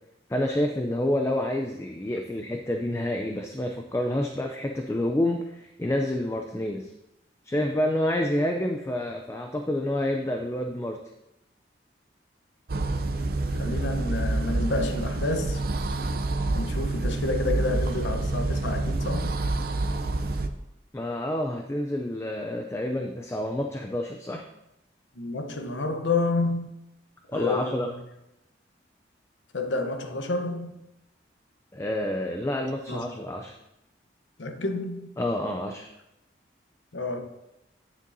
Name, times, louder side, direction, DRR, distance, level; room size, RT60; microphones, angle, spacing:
voice 1, 0.3-6.9 7.4-11.0 20.9-24.4 27.3-27.9 31.7-33.5 35.2-35.9, left 1 dB, 15° left, 0.4 m, -28 dB
sound 1, 12.7-20.5, right 2 dB, 50° right, 0.5 m, -27 dB
voice 2, 13.5-15.6 16.5-19.4 25.2-26.7 27.3-28.0 29.5-30.8 32.9-33.1 34.4-35.1 36.9-37.2, left 3 dB, 90° left, 0.8 m, -29 dB
9.4 x 7.3 x 2.7 m
head